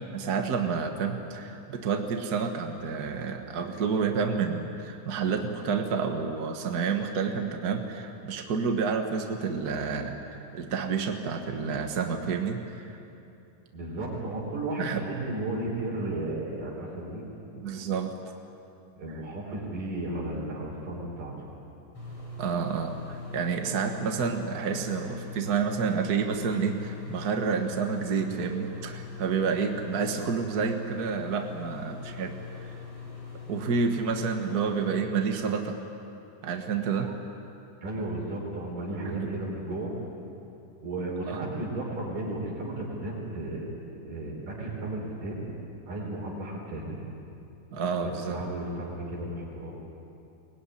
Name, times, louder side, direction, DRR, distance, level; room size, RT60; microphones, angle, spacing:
voice 1, 0.0-13.0 14.8-15.0 17.5-18.1 22.4-32.4 32.7-32.8 33.5-35.8 36.4-37.2 39.1-39.3 41.3-41.4 47.7-48.4, right 5 dB, 55° right, 4 dB, 1.1 m, -29 dB
voice 2, 13.7-17.2 19.0-21.5 37.8-39.9 40.8-45.4 45.9-47.0 48.0-49.8, right 2 dB, 80° right, -3 dB, 5.8 m, -34 dB
sound 1, 21.9-34.9, left 5 dB, 45° left, 6.7 m, -42 dB
23.5 x 20.5 x 9.9 m, 2.8 s
omnidirectional pair, 3.8 m